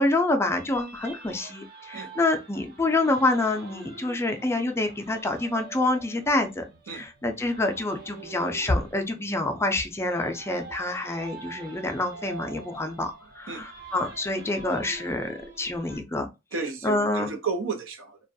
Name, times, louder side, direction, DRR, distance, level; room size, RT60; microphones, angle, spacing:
voice 1, 0.0-16.3 16.8-17.3, left 2 dB, 15° left, 0.3 m, -27 dB
sound 1, 0.5-16.0, right 4 dB, 50° right, 0.8 m, -46 dB
voice 2, 16.5-18.2, right 4 dB, 85° right, 0.6 m, -32 dB
2.4 x 2.2 x 2.6 m
head